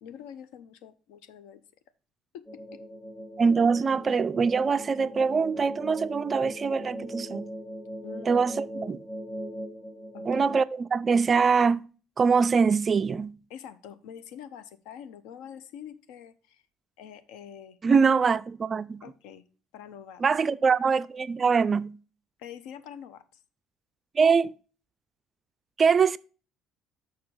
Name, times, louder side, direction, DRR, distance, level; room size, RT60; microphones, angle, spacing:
voice 1, 0.0-1.6 2.3-2.8 8.0-8.3 10.1-10.5 13.5-16.6 17.0-18.0 19.0-19.4 19.7-20.2 22.4-23.4, left 8 dB, 60° left, 0.6 m, -45 dB
sound 1, 2.5-10.6, equal, 5° left, 0.7 m, -39 dB
voice 2, 3.4-7.5 8.3-9.0 10.3-11.9 12.2-13.4 17.8-19.0 20.2-22.0 24.1-24.5 25.8-26.2, right 5 dB, 35° right, 0.3 m, -23 dB
6.6 x 5.5 x 5.1 m
figure-of-eight pair, 50°, 0 cm